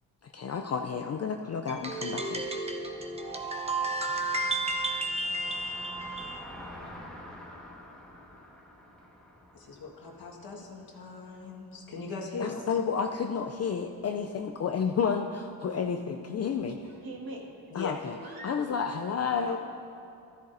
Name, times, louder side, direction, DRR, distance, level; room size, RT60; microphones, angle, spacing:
voice 1, 0.3-2.4 12.4-16.8 17.7-18.1 18.4-19.6, left 6 dB, 40° left, 4 dB, 0.4 m, -31 dB
sound 1, 1.7-6.4, right 2 dB, 15° right, 0.7 m, -32 dB
Car passing by, 2.8-15.1, left 1 dB, ahead, 1.4 m, -50 dB
voice 2, 9.5-12.7 17.7-17.9, left 4 dB, 60° left, -2 dB, 1.7 m, -39 dB
voice 3, 16.7-17.5 18.2-18.6 19.4-19.6, right 2 dB, 55° right, -1 dB, 1.9 m, -43 dB
14.5 x 13.0 x 2.6 m, 2.6 s
cardioid pair, 120°, 41 cm